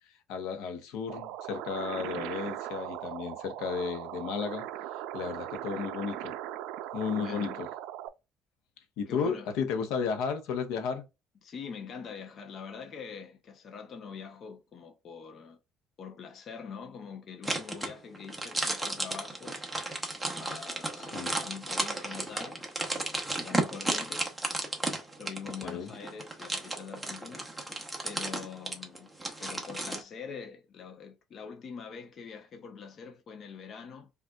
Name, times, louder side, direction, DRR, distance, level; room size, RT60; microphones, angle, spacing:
voice 1, 0.3-4.7 5.1-6.3 6.9-7.7 9.0-11.0 21.0-21.4 25.6-25.9, left 6 dB, 90° left, 0.9 m, -33 dB
sound 1, 1.1-8.1, right 12 dB, 85° right, 0.4 m, -39 dB
voice 2, 7.1-7.6 9.1-9.5 11.4-15.6 16.0-19.6 20.4-21.1 21.4-22.6 22.9-24.3 25.2-27.5 28.0-29.1 29.4-34.1, left 6 dB, 45° left, 0.7 m, -44 dB
sound 2, 17.4-30.0, right 2 dB, 5° right, 0.8 m, -34 dB
5.1 x 2.5 x 2.3 m
cardioid pair, 135°, 0 cm